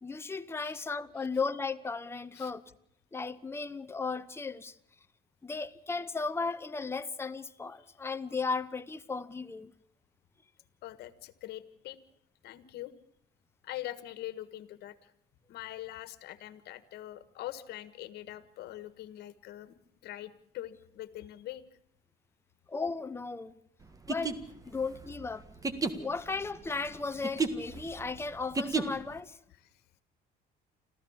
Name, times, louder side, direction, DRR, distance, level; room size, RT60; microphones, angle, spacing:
voice 1, 0.0-2.6 3.1-4.8 5.4-9.7 22.7-23.6 24.1-25.4 26.0-29.4, left 4 dB, 15° left, 0.9 m, -35 dB
voice 2, 10.8-12.0 12.4-12.9 13.6-15.1 15.5-19.7 20.0-21.6, left 14 dB, 75° left, 1.6 m, -43 dB
sound 1, 23.9-29.2, right 4 dB, 20° right, 1.7 m, -33 dB
26.0 x 15.5 x 7.3 m
cardioid pair, 110°, 17 cm